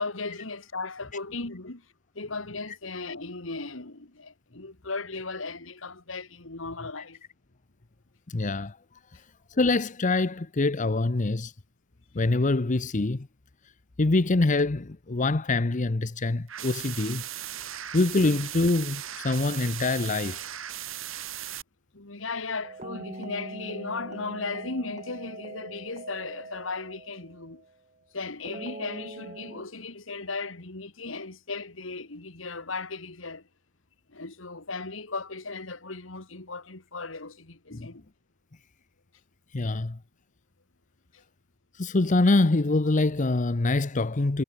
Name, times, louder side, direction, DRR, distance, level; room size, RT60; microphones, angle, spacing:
voice 1, 0.0-1.9 2.1-7.2 21.9-27.6 28.1-33.5 34.1-38.0 41.1-41.2, left 3 dB, 75° left, 2.4 m, -36 dB
voice 2, 8.3-8.8 9.1-9.2 9.5-11.5 12.1-13.3 14.0-17.2 17.9-20.4 37.7-37.9 39.5-40.0 41.7-44.4, left 2 dB, 40° left, 0.8 m, -25 dB
sound 1, 16.5-21.6, right 11 dB, 85° right, 5.6 m, -37 dB
sound 2, 22.6-27.7 28.5-29.6, right 2 dB, 40° right, 6.0 m, -42 dB
head